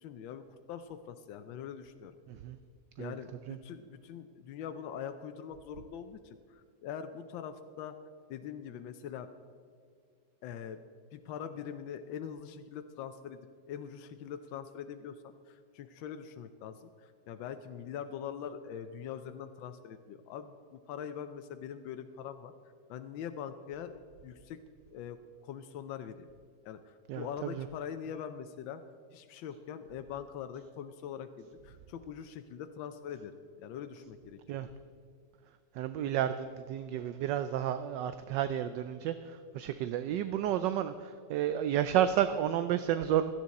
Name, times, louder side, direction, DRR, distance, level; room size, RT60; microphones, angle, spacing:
voice 1, 0.0-2.1 3.0-8.0 8.3-9.3 10.4-10.8 11.1-13.4 13.7-15.2 15.5-22.5 22.9-24.6 24.9-25.2 25.4-26.3 26.6-28.8 29.1-33.3 33.6-34.4, left 8 dB, 85° left, 8 dB, 1.4 m, -43 dB
voice 2, 27.1-27.7 34.5-34.7 35.8-43.3, right 10 dB, 75° right, 11 dB, 1.2 m, -31 dB
16.5 x 13.5 x 4.1 m, 2.2 s
omnidirectional pair, 2.1 m